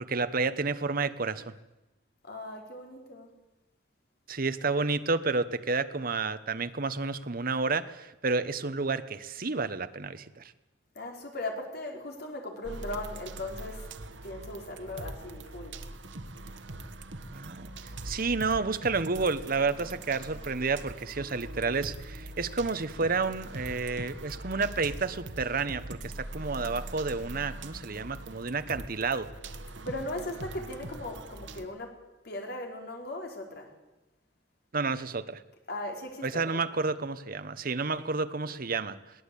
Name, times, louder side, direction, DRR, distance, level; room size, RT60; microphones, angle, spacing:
voice 1, 0.0-1.4 4.3-10.4 17.3-17.7 18.0-29.3 34.7-35.4 36.2-39.0, right 4 dB, 50° right, 12 dB, 1.1 m, -30 dB
voice 2, 2.2-3.3 10.9-13.8 14.2-15.7 29.8-31.9 32.2-33.7 35.7-36.6, left 1 dB, 60° left, 2 dB, 4.4 m, -38 dB
sound 1, 12.6-31.6, right 2 dB, 80° right, 1.5 m, -42 dB
22.0 x 17.0 x 8.5 m, 1.0 s
head